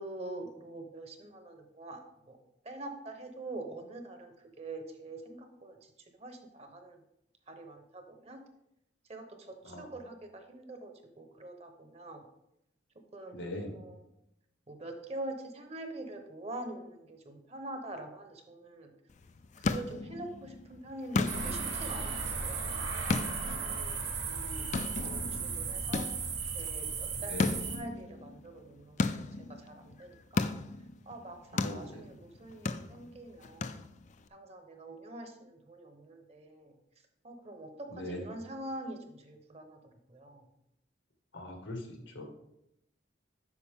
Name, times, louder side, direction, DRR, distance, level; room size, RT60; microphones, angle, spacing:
voice 1, 0.0-2.0 2.3-2.4 2.6-5.9 6.2-7.0 7.5-8.4 9.1-10.9 11.2-12.2 13.1-13.4 13.7-14.1 14.7-18.9 19.6-26.1 26.5-29.1 29.6-30.6 31.1-33.8 34.3-36.8 37.2-39.8 40.1-40.4, right 2 dB, 35° right, 6 dB, 1.0 m, -45 dB
voice 2, 13.3-13.7 27.3-27.5 31.5-31.8 37.9-38.2 41.3-41.8 42.1-42.2, left 1 dB, 90° left, 2 dB, 1.8 m, -40 dB
sound 1, 19.1-34.3, left 3 dB, 40° left, 0.4 m, -37 dB
sound 2, 21.3-27.8, right 5 dB, 65° right, 1.7 m, -36 dB
8.3 x 5.8 x 3.6 m, 0.81 s
head